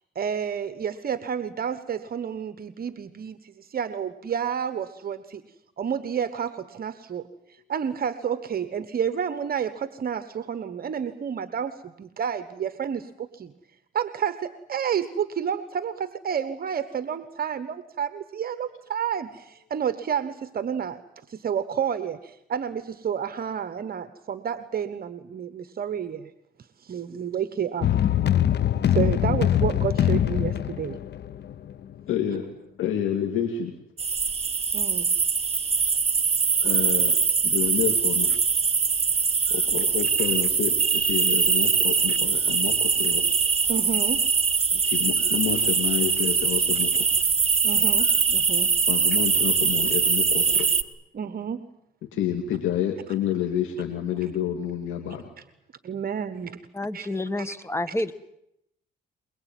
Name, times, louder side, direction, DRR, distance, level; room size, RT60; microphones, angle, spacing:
voice 1, 0.1-5.4 5.8-13.5 13.9-21.0 21.3-26.3 26.8-27.9 28.9-31.0 34.7-35.1 35.8-36.0 40.2-40.3 42.1-42.2 43.7-44.2 47.6-48.7 51.1-51.6 55.8-56.6 56.9-57.1 57.4-57.5, right 8 dB, 50° right, 12 dB, 1.3 m, -30 dB
sound 1, 27.8-31.9, left 11 dB, 60° left, 1.0 m, -23 dB
voice 2, 32.1-32.5 32.8-33.7 36.6-37.2 37.4-38.3 39.5-43.2 44.7-47.1 48.9-50.7 52.1-55.2, left 10 dB, 85° left, 4 dB, 2.6 m, -29 dB
sound 2, 34.0-50.8, right 5 dB, 30° right, 1.5 m, -22 dB
voice 3, 56.7-58.1, left 1 dB, 15° left, 14 dB, 1.4 m, -29 dB
23.0 x 22.5 x 9.3 m, 0.80 s
cardioid pair, 90°, 20 cm